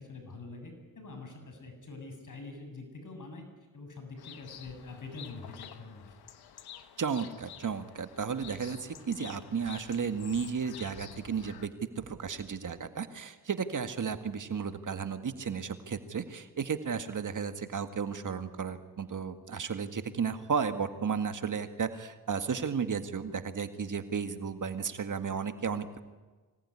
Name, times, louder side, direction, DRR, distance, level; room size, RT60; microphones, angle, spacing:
voice 1, 0.0-3.5 3.7-6.1, left 3 dB, 55° left, 5 dB, 7.7 m, -45 dB
sound 1, 4.2-11.7, left 9 dB, 90° left, 1.4 m, -50 dB
voice 2, 7.0-11.7 12.0-26.0, right 6 dB, 55° right, 8 dB, 2.0 m, -34 dB
24.5 x 18.5 x 9.9 m, 1.3 s
cardioid pair, 55°, 37 cm